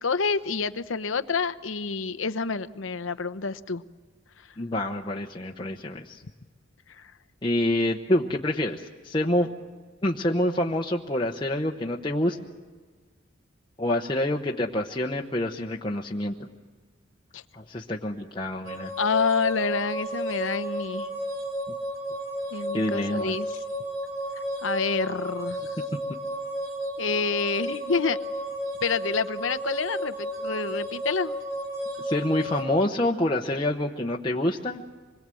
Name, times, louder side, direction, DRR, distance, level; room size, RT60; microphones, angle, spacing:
voice 1, 0.0-3.8 4.4-4.5 6.9-7.1 17.3-17.4 19.0-21.1 22.5-23.6 24.6-25.8 27.0-28.2 28.8-31.3, left 5 dB, 85° left, 13 dB, 0.8 m, -28 dB
voice 2, 4.6-6.2 7.4-9.5 10.0-12.4 13.8-16.5 17.5-18.9 22.7-23.3 32.0-34.8, left 1 dB, 25° left, 0 dB, 0.9 m, -27 dB
sound 1, 18.6-32.6, equal, 85° right, 3.8 m, -33 dB
26.0 x 21.5 x 7.7 m, 1.4 s
head